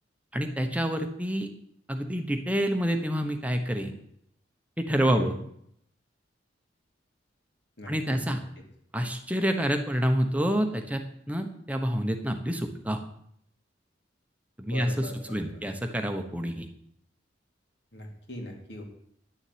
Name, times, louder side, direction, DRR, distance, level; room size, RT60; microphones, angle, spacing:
voice 1, 0.3-1.5 1.9-4.0 4.8-5.4 7.9-8.4 8.9-13.0 14.6-16.7, equal, 10° right, 5 dB, 1.0 m, -28 dB
voice 2, 5.0-5.4 7.8-8.4 14.7-15.6 17.9-18.8, equal, 60° left, 2 dB, 2.8 m, -39 dB
10.5 x 7.1 x 9.4 m, 0.71 s
head